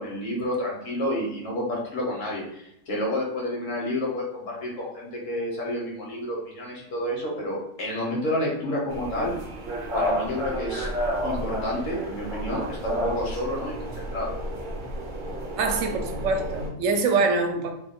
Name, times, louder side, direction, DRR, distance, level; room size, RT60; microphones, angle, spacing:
voice 1, 0.0-9.3 9.9-10.9 11.2-14.3, left 1 dB, 75° left, -3 dB, 1.4 m, -30 dB
sound 1, 8.9-16.7, equal, 50° right, 0.7 m, -31 dB
voice 2, 15.6-17.7, right 4 dB, 80° right, 4 dB, 0.9 m, -24 dB
3.0 x 2.2 x 3.5 m, 0.79 s
omnidirectional pair, 1.3 m